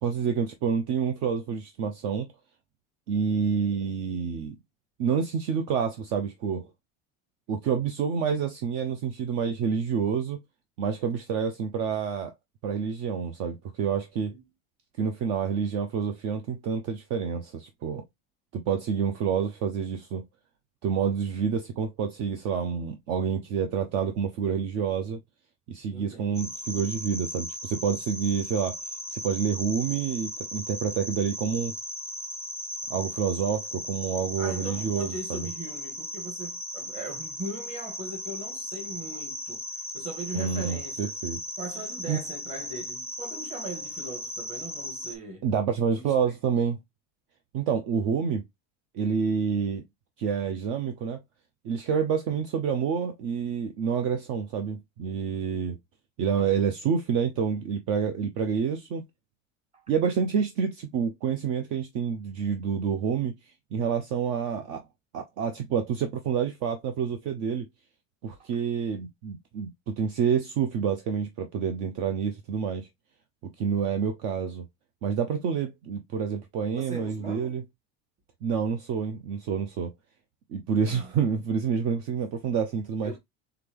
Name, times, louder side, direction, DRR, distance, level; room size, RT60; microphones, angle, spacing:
voice 1, 0.0-2.3 3.1-4.6 5.0-6.7 7.5-10.4 10.8-12.3 12.6-14.3 15.0-18.0 18.5-20.2 20.8-25.2 25.7-28.8 29.1-31.7 32.9-35.5 40.3-41.4 42.1-42.2 45.4-46.8 47.5-48.4 48.9-49.8 50.2-51.2 51.6-55.8 56.2-59.0 59.9-63.3 63.7-64.8 65.1-67.7 68.2-72.9 73.6-74.6 75.0-77.6 78.4-79.9 80.5-83.2, right 7 dB, 55° right, 0.7 m, -28 dB
voice 2, 25.9-26.4 34.4-39.6 39.9-41.2 41.6-45.4 46.0-46.3 59.7-59.9 68.4-68.5 76.7-77.6 80.9-81.2 83.0-83.2, right 2 dB, 25° right, 1.6 m, -39 dB
sound 1, 26.3-45.1, left 1 dB, 5° right, 0.5 m, -37 dB
3.9 x 3.4 x 3.3 m
cardioid pair, 180°, 30 cm